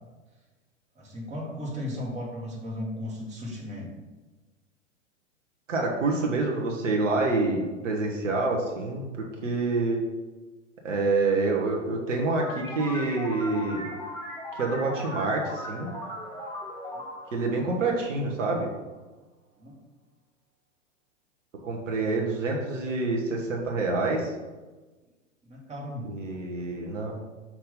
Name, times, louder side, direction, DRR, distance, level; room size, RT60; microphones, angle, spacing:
voice 1, 1.0-3.9 16.9-17.0 19.6-19.8 25.4-26.1, left 1 dB, 20° right, -3 dB, 1.8 m, -36 dB
voice 2, 5.7-10.0 10.8-13.9 14.5-15.9 17.3-18.7 21.6-24.3 26.1-27.1, right 3 dB, 75° right, 0 dB, 1.2 m, -27 dB
sound 1, 12.3-18.5, left 1 dB, 10° left, 1.4 m, -38 dB
6.0 x 3.0 x 5.3 m, 1.2 s
figure-of-eight pair, 100°, 38 cm